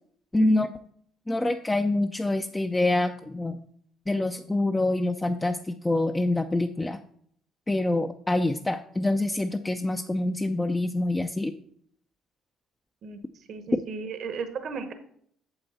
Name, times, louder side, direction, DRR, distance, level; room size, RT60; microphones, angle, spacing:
voice 1, 0.3-0.7 1.3-3.6 4.1-7.0 7.7-11.5 13.7-13.8, left 2 dB, 15° left, 6 dB, 0.4 m, -26 dB
voice 2, 13.5-14.9, right 5 dB, 60° right, 9 dB, 0.9 m, -35 dB
8.8 x 6.9 x 4.1 m, 0.66 s
cardioid pair, 105°, 0 cm